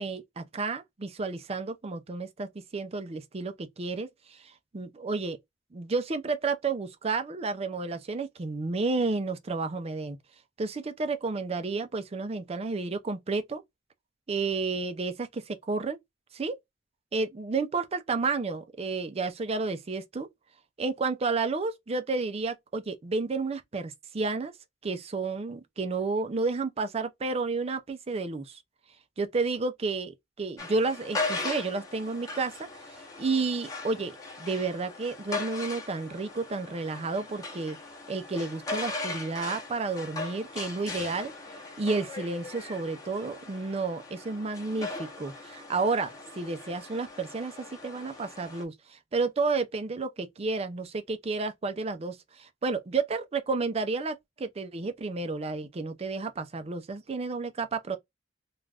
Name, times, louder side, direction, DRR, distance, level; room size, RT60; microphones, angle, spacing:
voice 1, 0.0-4.4 4.7-5.4 5.7-10.2 10.6-13.6 14.3-16.0 16.3-16.6 17.1-20.3 20.8-24.5 24.8-28.6 29.2-34.1 34.4-37.8 38.1-41.3 41.8-58.0, right 3 dB, 35° right, 0.4 m, -31 dB
sound 1, 30.6-48.6, left 3 dB, 20° left, 0.8 m, -39 dB
2.5 x 2.3 x 3.2 m
head